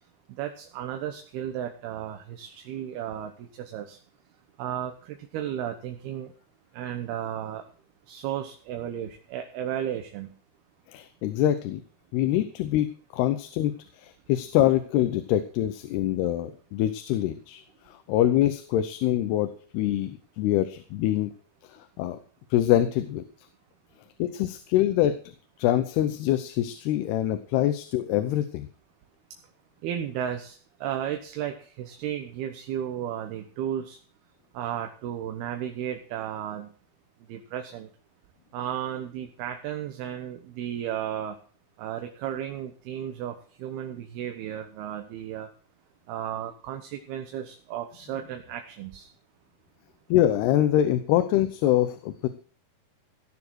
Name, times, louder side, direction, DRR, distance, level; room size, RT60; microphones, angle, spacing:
voice 1, 0.3-4.0 4.6-6.3 6.7-7.6 8.1-10.3 29.8-34.0 34.5-36.7 37.3-37.9 38.5-41.4 41.8-45.5 46.1-49.1, right 10 dB, 80° right, 5 dB, 3.1 m, -34 dB
voice 2, 10.9-11.8 12.1-13.7 14.0-21.3 21.7-22.2 22.5-23.2 24.2-25.2 25.6-28.7 50.1-52.3, left 12 dB, 85° left, 10 dB, 2.9 m, -25 dB
17.0 x 7.2 x 6.3 m, 0.43 s
omnidirectional pair, 4.5 m